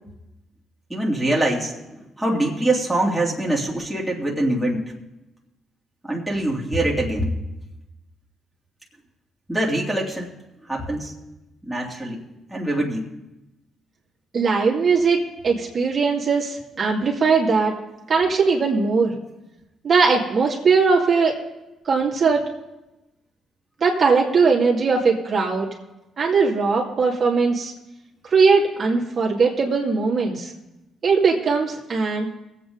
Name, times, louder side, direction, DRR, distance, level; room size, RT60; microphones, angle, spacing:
voice 1, 0.9-4.8 6.0-7.3 9.5-10.3 10.7-11.1 11.6-12.2 12.5-13.0, right 1 dB, 5° right, -4 dB, 2.8 m, -24 dB
voice 2, 14.3-17.7 18.1-19.1 19.8-21.4 21.8-22.5 23.8-25.7 26.2-27.7 28.3-30.5 31.0-32.3, right 4 dB, 45° right, -2 dB, 2.4 m, -19 dB
21.0 x 8.4 x 3.9 m, 0.97 s
cardioid pair, 90°, 0 cm